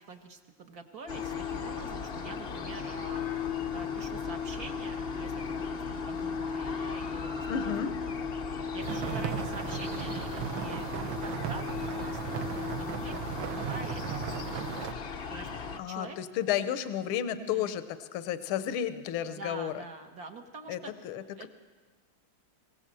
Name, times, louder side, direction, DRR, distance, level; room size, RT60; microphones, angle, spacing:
voice 1, 0.0-3.2 3.7-8.1 8.7-14.8 15.3-15.5 15.9-16.2 17.3-17.7 19.3-20.9 21.4-21.5, right 4 dB, 50° right, 5 dB, 1.7 m, -45 dB
sound 1, 1.1-15.8, left 6 dB, 50° left, 0.7 m, -36 dB
voice 2, 7.5-7.9 15.8-19.7 20.7-21.5, left 10 dB, 75° left, 12 dB, 1.7 m, -32 dB
sound 2, 8.8-14.9, right 9 dB, 70° right, 1.5 m, -36 dB
23.5 x 17.0 x 7.6 m, 1.5 s
omnidirectional pair, 2.3 m